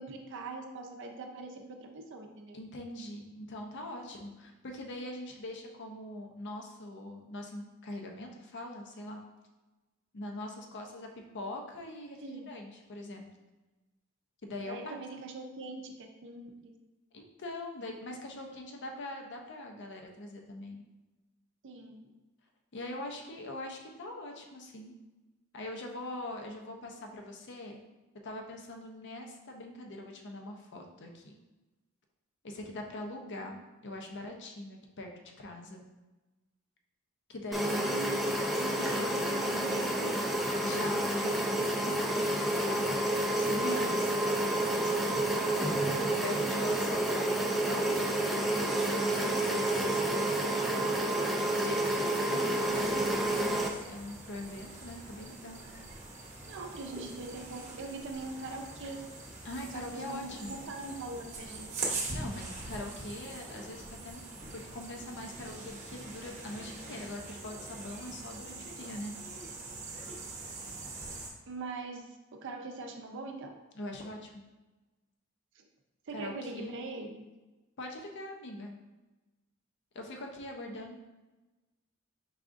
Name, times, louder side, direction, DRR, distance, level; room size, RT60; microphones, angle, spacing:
voice 1, 0.0-2.6 12.2-12.4 14.7-16.7 21.6-22.1 33.4-33.5 37.6-38.2 38.6-40.2 45.3-45.5 47.3-47.4 52.3-53.0 56.5-59.0 59.7-60.3 60.7-62.0 71.5-73.5 75.5-75.7 76.1-77.2, right 3 dB, 60° right, 4 dB, 0.6 m, -42 dB
voice 2, 2.5-9.2 10.1-11.1 11.3-13.3 14.4-14.9 17.1-20.8 22.7-24.9 25.5-27.8 28.2-31.3 32.4-35.1 35.4-35.8 37.3-37.9 40.6-44.1 44.4-45.3 46.1-50.6 51.5-55.6 59.4-60.6 62.1-64.3 64.5-69.1 73.7-74.4 76.1-76.7 77.8-78.8 79.9-81.0, left 1 dB, 55° left, 2 dB, 0.6 m, -42 dB
sound 1, 37.5-53.7, right 1 dB, ahead, 0.4 m, -29 dB
sound 2, 52.6-71.3, right 3 dB, 35° right, 0.9 m, -43 dB
4.8 x 3.6 x 2.5 m, 1.1 s
head